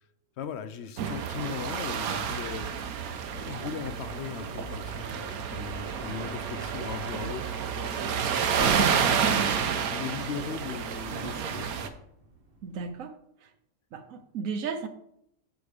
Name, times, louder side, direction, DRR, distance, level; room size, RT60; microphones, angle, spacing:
voice 1, 0.4-2.7 3.3-8.3 8.8-11.7, left 7 dB, 65° left, 11 dB, 0.7 m, -39 dB
sound 1, 1.0-11.9, right 7 dB, 85° right, 1.2 m, -30 dB
sound 2, 7.9-12.9, right 1 dB, 45° right, 1.2 m, -45 dB
voice 2, 12.6-13.1 13.9-14.9, right 5 dB, 70° right, 9 dB, 1.2 m, -34 dB
8.1 x 5.1 x 5.0 m, 0.75 s
omnidirectional pair, 1.5 m